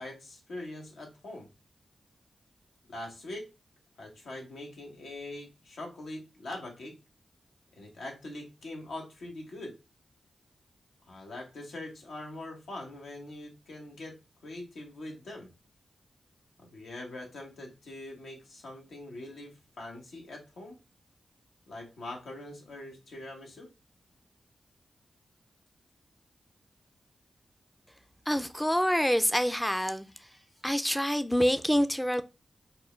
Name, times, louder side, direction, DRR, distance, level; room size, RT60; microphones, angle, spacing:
voice 1, 0.0-1.5 2.9-3.4 4.0-6.9 7.8-9.7 11.1-14.2 14.4-15.5 16.6-20.8 21.7-23.7, left 2 dB, 90° left, 1.0 m, -43 dB
voice 2, 28.3-30.1 30.6-32.2, equal, 5° left, 0.3 m, -26 dB
4.3 x 2.2 x 3.2 m
cardioid pair, 50°, 0 cm